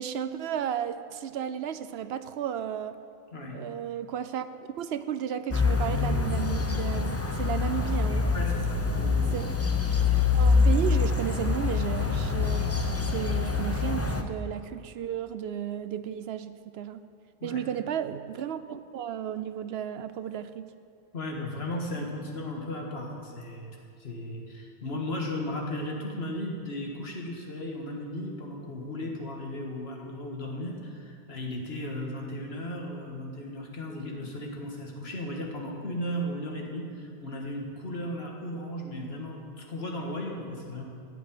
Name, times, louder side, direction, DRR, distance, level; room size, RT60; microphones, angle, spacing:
voice 1, 0.0-3.0 3.5-8.3 9.3-9.4 10.3-12.7 13.1-17.0 17.4-20.6, right 9 dB, 80° right, 12 dB, 0.9 m, -33 dB
voice 2, 3.3-3.6 8.3-9.4 17.4-17.6 21.1-40.8, left 1 dB, 80° left, 0 dB, 1.9 m, -36 dB
sound 1, 5.5-14.2, left 4 dB, 15° left, 0.6 m, -25 dB
14.0 x 5.5 x 9.3 m, 2.4 s
omnidirectional pair, 1.0 m